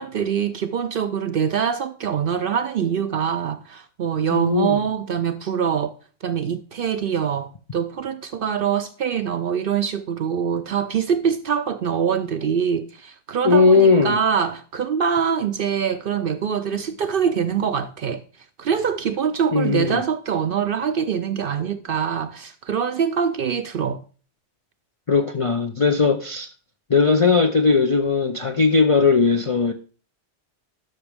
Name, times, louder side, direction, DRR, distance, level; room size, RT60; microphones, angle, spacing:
voice 1, 0.0-5.9 6.2-18.2 18.6-24.0, right 7 dB, 60° right, 0.6 m, -24 dB
voice 2, 4.3-4.8 13.4-14.2 19.5-20.0 25.1-26.5 26.9-29.7, left 4 dB, 50° left, 0.4 m, -18 dB
12.0 x 6.0 x 3.4 m
omnidirectional pair, 1.3 m